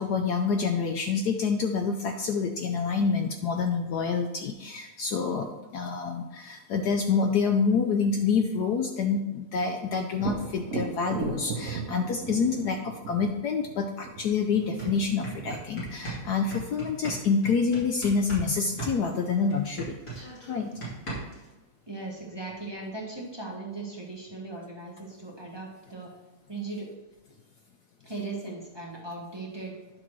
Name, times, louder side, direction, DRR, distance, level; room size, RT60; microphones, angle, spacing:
voice 1, 0.0-20.0 20.5-20.7, left 5 dB, 80° left, 4 dB, 0.9 m, -27 dB
Thunder, 10.1-17.8 21.5-21.6 22.0-22.9, right 5 dB, 55° right, 0.9 m, -38 dB
sound 1, 14.2-14.3 14.6-18.5 18.8-21.5, right 3 dB, 40° left, 3.1 m, -37 dB
voice 2, 21.9-26.1 26.5-26.9 28.0-29.7, right 3 dB, 15° right, -3 dB, 0.8 m, -38 dB
10.0 x 6.3 x 3.1 m, 1.1 s
omnidirectional pair, 2.4 m